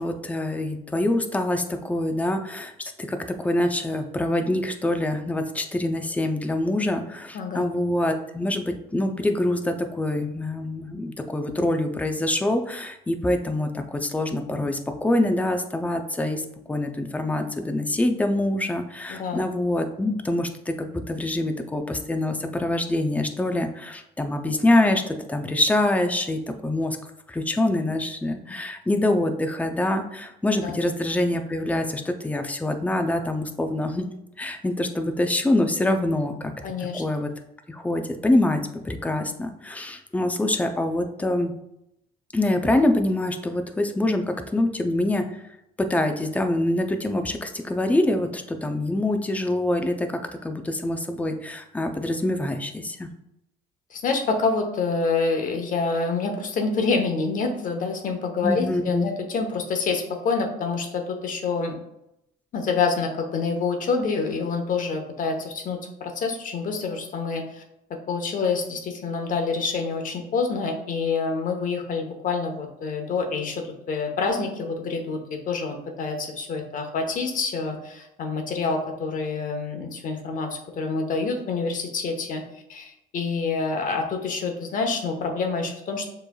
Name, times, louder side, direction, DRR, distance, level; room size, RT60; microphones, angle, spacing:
voice 1, 0.0-27.0 27.3-34.1 34.4-36.5 36.9-37.3 37.7-41.5 42.3-45.3 45.8-53.1 58.4-59.1, left 1 dB, 10° left, 6 dB, 0.5 m, -25 dB
voice 2, 7.3-7.7 19.1-19.4 30.6-30.8 36.6-37.0 53.9-61.8 62.5-67.6 68.1-82.4 82.7-86.1, left 4 dB, 50° left, 3 dB, 0.9 m, -27 dB
6.8 x 3.2 x 2.3 m, 0.82 s
cardioid pair, 110°, 17 cm